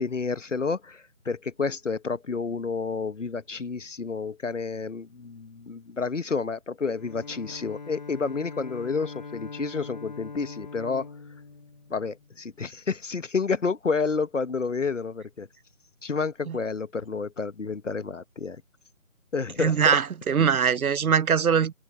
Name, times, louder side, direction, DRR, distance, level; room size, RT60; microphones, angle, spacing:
voice 1, 0.0-11.1 11.9-15.5 16.0-18.6 19.3-19.8 20.4-20.6, left 4 dB, 60° left, 1.4 m, -30 dB
Bowed string instrument, 6.9-12.5, left 4 dB, 30° left, 1.3 m, -42 dB
voice 2, 19.6-21.7, right 7 dB, 80° right, 0.7 m, -22 dB
figure-of-eight pair, 165°, 42 cm